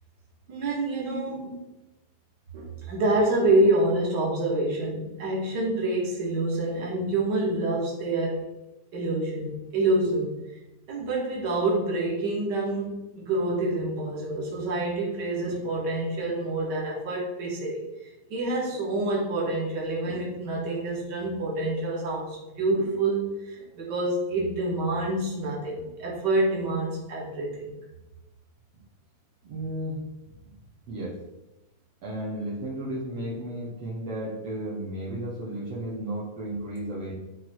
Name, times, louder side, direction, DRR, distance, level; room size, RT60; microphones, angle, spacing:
voice 1, 0.5-1.6 2.5-8.4 8.9-10.4 10.9-17.8 18.3-27.7, right 2 dB, 35° right, -4 dB, 1.9 m, -27 dB
voice 2, 29.4-30.0 30.3-30.4 30.9-31.1 32.0-37.1, right 1 dB, 65° right, -6 dB, 1.5 m, -33 dB
12.0 x 4.2 x 4.6 m, 0.98 s
omnidirectional pair, 5.0 m